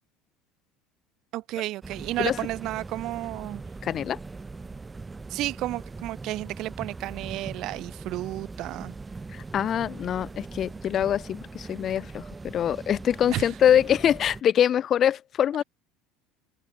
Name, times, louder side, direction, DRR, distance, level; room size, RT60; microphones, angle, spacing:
voice 1, 1.3-3.6 5.3-8.9 13.3-13.5, right 16 dB, 60° right, 3.2 m, -32 dB
cathedral echo, 1.8-14.4, right 3 dB, 20° right, 4.5 m, -41 dB
voice 2, 3.8-4.2 9.3-15.6, left 10 dB, 45° left, 0.4 m, -24 dB
open air
hypercardioid pair, 70°, 0 cm